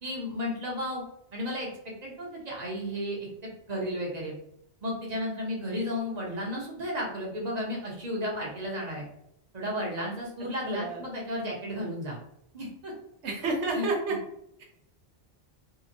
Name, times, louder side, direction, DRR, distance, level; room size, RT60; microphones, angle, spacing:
voice 1, 0.0-1.0 1.3-1.7 2.0-3.3 3.7-4.3 4.8-9.0 9.5-12.2 12.5-12.9 13.7-13.9, left 1 dB, 40° right, -2 dB, 0.8 m, -33 dB
voice 2, 10.7-11.0 13.2-14.2 14.6-14.7, right 3 dB, 80° right, 1 dB, 1.0 m, -29 dB
2.8 x 2.1 x 2.5 m, 0.72 s
omnidirectional pair, 1.2 m